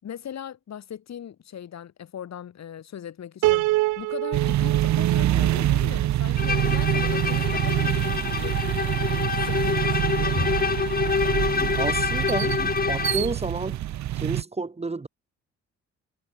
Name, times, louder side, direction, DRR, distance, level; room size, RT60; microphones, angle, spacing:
voice 1, 0.0-3.7 4.0-8.6 9.0-10.5, left 9 dB, 60° left, 7.4 m, -39 dB
Piano, 3.4-6.7, right 19 dB, 90° right, 0.6 m, -27 dB
sound 1, 4.3-14.4, right 13 dB, 65° right, 0.9 m, -25 dB
Bowed string instrument, 6.4-13.3, left 5 dB, 30° left, 1.4 m, -26 dB
voice 2, 11.8-12.6 12.9-13.8 14.2-15.1, right 3 dB, 20° right, 2.0 m, -30 dB
cardioid pair, 90°, 30 cm